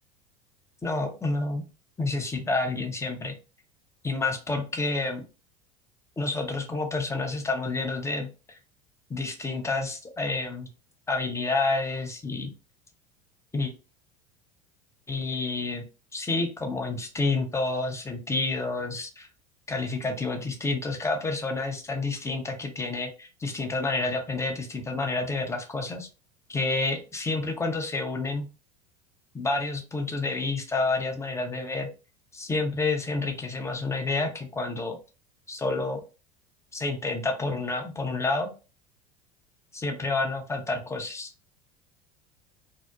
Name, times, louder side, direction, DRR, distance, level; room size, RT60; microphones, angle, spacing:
voice 1, 0.8-1.6 2.0-3.3 4.0-5.2 6.2-8.6 9.1-10.7 11.1-12.5 13.5-13.7 15.1-15.8 16.1-19.3 19.7-26.1 26.5-28.5 29.3-31.9 32.3-35.0 35.5-36.0 36.7-38.5 39.7-41.3, left 3 dB, 15° left, 4 dB, 0.6 m, -29 dB
2.7 x 2.0 x 2.2 m, 0.32 s
hypercardioid pair, 80°, 20 cm